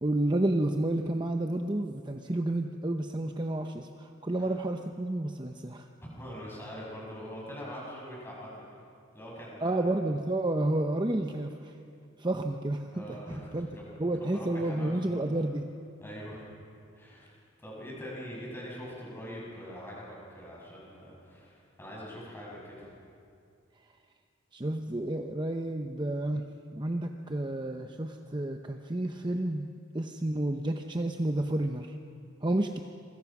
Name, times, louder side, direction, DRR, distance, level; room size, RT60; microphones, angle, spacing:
voice 1, 0.0-5.9 9.6-11.7 12.2-13.2 13.5-13.7 14.0-15.7 24.5-26.4 26.7-29.7 29.9-32.0 32.4-32.8, right 1 dB, 20° right, 4 dB, 0.8 m, -30 dB
voice 2, 6.2-8.6 9.1-10.0 12.9-13.9 14.2-15.4 16.0-16.5 16.9-17.3 17.6-22.9, equal, 10° left, -4 dB, 7.6 m, -43 dB
27.0 x 24.0 x 6.0 m, 2.5 s
head